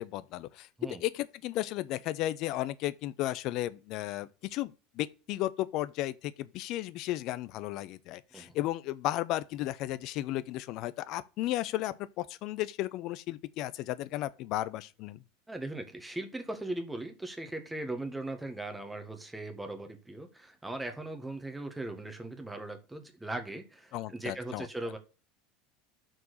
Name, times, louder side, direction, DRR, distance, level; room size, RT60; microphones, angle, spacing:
voice 1, 0.0-0.7 1.0-15.2 23.9-24.7, left 15 dB, 50° left, 0.6 m, -34 dB
voice 2, 15.5-25.0, right 2 dB, 10° right, 1.6 m, -39 dB
6.2 x 4.7 x 6.5 m
figure-of-eight pair, 75°, 0 cm